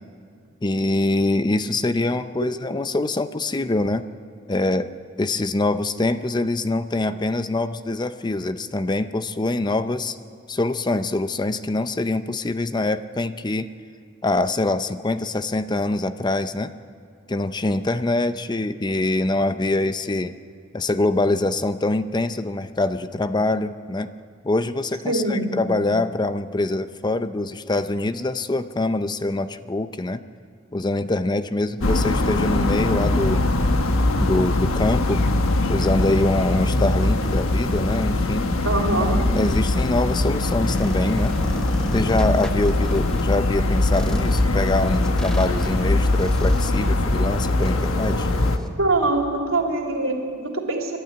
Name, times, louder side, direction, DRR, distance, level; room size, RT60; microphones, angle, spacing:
voice 1, 0.6-4.0 4.5-4.9 5.2-10.2 10.5-13.7 14.2-16.7 17.3-20.3 20.7-24.1 24.4-30.2 30.7-33.5 34.2-35.2 35.7-38.5 39.4-41.4 41.9-48.3, left 2 dB, 20° left, 12 dB, 0.5 m, -24 dB
voice 2, 25.1-25.5 38.6-39.2 48.8-51.0, right 2 dB, 90° right, 1 dB, 3.1 m, -23 dB
sound 1, 31.8-48.6, left 2 dB, 80° left, 1.2 m, -22 dB
sound 2, 40.7-43.2 43.9-48.7, equal, 5° left, 1.1 m, -35 dB
26.0 x 12.0 x 9.6 m, 2.2 s
head